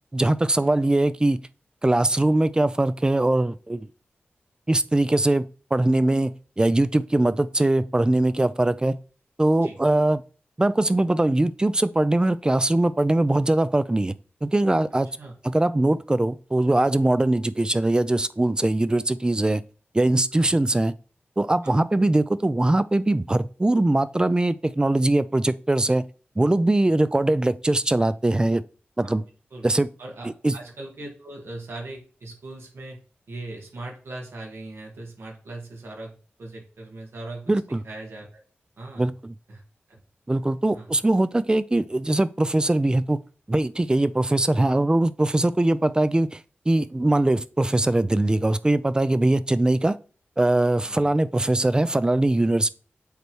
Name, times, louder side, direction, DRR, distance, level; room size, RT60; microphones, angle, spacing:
voice 1, 0.1-1.4 1.8-3.9 4.7-5.4 5.7-9.0 9.4-10.2 10.6-14.1 14.4-15.1 15.4-19.6 19.9-20.9 21.4-26.0 26.4-28.6 29.0-29.2 29.6-29.9 30.4-30.5 37.5-37.8 39.0-39.3 40.3-43.2 43.5-46.4 46.7-50.0 50.4-52.7, right 2 dB, 20° right, 0.4 m, -21 dB
voice 2, 30.0-33.0 33.3-37.5 37.8-38.4 38.8-39.1 39.5-39.6 39.9-40.0 40.7-40.9 50.9-51.1, right 2 dB, 80° right, 1.9 m, -39 dB
8.0 x 3.3 x 4.5 m
wide cardioid pair, 75°, 4 cm